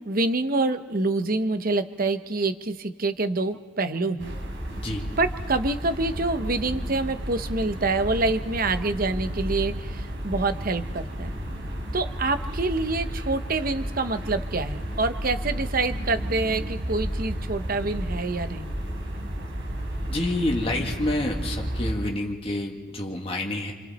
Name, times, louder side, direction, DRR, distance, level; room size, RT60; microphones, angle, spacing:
voice 1, 0.0-4.3 5.2-11.3 11.9-18.7, right 3 dB, 45° right, 9 dB, 0.9 m, -26 dB
sound 1, 4.2-21.9, equal, 65° right, 3.9 m, -32 dB
voice 2, 20.1-23.7, left 1 dB, 30° left, 0 dB, 1.8 m, -28 dB
27.0 x 26.0 x 4.2 m, 1.5 s
head